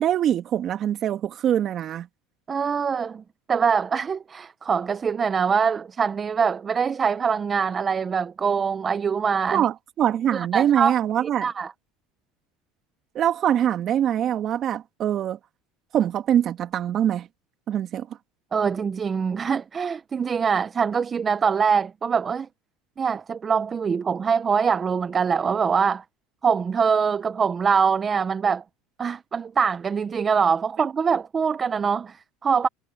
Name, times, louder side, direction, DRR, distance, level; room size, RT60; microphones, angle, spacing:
voice 1, 0.0-2.1 9.5-11.5 13.1-15.4 15.9-17.3 17.7-18.1, right 10 dB, 45° right, 2.4 m, -23 dB
voice 2, 2.5-3.2 3.5-9.7 10.3-11.0 11.2-11.7 18.5-22.5 23.0-26.0 26.4-28.6 29.0-32.7, right 6 dB, 25° right, 0.8 m, -23 dB
supercardioid pair, 110°, 0 cm